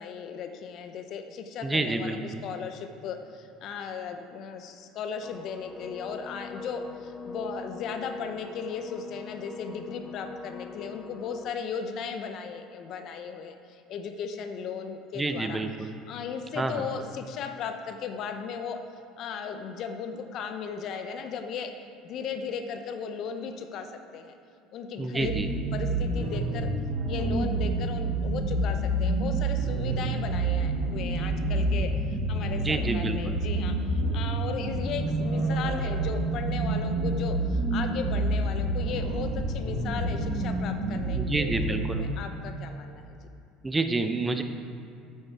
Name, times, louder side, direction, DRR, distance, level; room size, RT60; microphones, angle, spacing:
voice 1, 0.0-18.8 19.2-21.7 22.0-24.4 24.7-25.3 25.7-26.7 27.1-43.2, left 6 dB, 55° left, 7 dB, 0.8 m, -36 dB
voice 2, 1.6-2.4 15.2-15.9 16.6-16.8 25.0-25.5 32.6-33.4 41.1-42.0 43.6-44.4, right 2 dB, 15° right, 7 dB, 0.8 m, -29 dB
sound 1, 5.2-11.5, left 2 dB, 20° left, 0.8 m, -42 dB
sound 2, 25.2-42.1, right 2 dB, 75° right, 1.6 m, -28 dB
8.8 x 8.0 x 4.7 m, 2.5 s
hypercardioid pair, 85°, 0 cm